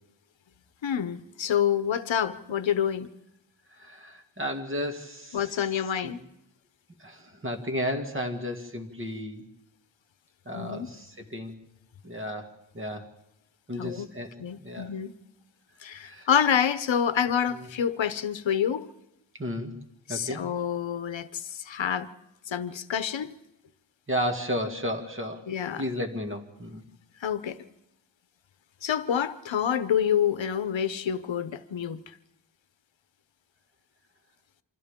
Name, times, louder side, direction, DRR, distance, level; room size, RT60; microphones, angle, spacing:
voice 1, 0.8-3.1 5.3-6.2 10.5-10.9 13.8-14.1 14.4-15.1 15.8-18.9 20.1-22.1 22.5-23.4 25.5-25.8 27.2-27.6 28.8-32.0, left 8 dB, 80° left, 13 dB, 0.8 m, -27 dB
voice 2, 3.8-5.5 6.0-6.2 7.0-9.4 10.5-11.6 12.0-13.1 13.7-14.9 16.0-16.3 17.5-17.7 19.4-19.8 20.1-20.4 24.1-25.5 25.8-26.8, equal, 25° right, 4 dB, 2.1 m, -33 dB
28.0 x 25.5 x 3.7 m, 0.87 s
wide cardioid pair, 120°, 45 cm